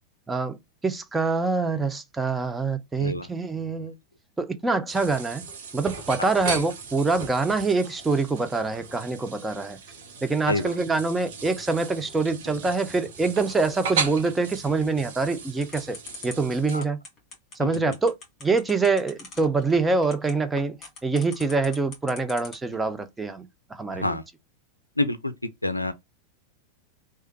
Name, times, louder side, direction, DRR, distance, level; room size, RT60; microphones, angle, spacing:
voice 1, 0.3-0.6 0.8-3.9 4.4-5.4 5.7-9.8 10.2-16.0 16.2-17.0 17.6-18.1 18.4-24.2, right 3 dB, 10° right, 0.5 m, -25 dB
voice 2, 3.0-3.3 6.2-6.3 10.5-10.7 16.7-16.8 17.6-17.8 23.9-24.2 25.0-25.3 25.6-25.9, left 2 dB, 85° left, 0.4 m, -27 dB
sound 1, 4.9-16.8, right 5 dB, 55° right, 0.8 m, -36 dB
sound 2, 15.6-22.7, left 4 dB, 30° left, 1.6 m, -42 dB
3.1 x 2.3 x 3.0 m
figure-of-eight pair, 90°, 0 cm